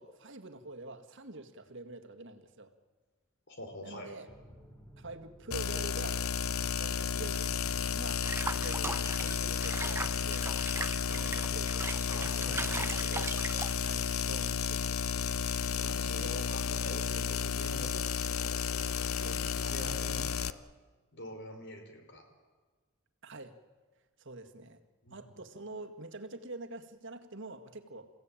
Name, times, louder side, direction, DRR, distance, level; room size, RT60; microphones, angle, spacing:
voice 1, 0.0-2.7 3.8-4.3 5.0-6.3 6.6-10.7 11.1-12.8 13.1-13.3 13.8-15.3 16.2-16.3 23.2-23.5 24.2-24.8 25.1-28.1, right 2 dB, 55° right, 5 dB, 1.8 m, -46 dB
voice 2, 3.5-4.1 12.1-13.3 15.7-20.6 21.1-22.2 25.0-25.2, left 1 dB, 55° left, 4 dB, 4.8 m, -45 dB
sound 1, 4.3-8.6 15.1-18.9, equal, 10° left, 2.6 m, -59 dB
sound 2, 5.5-20.5, left 7 dB, 70° left, 0.8 m, -32 dB
Water / Bathtub (filling or washing), 8.2-14.1, right 3 dB, 10° right, 0.8 m, -39 dB
29.5 x 16.5 x 9.0 m, 1.3 s
head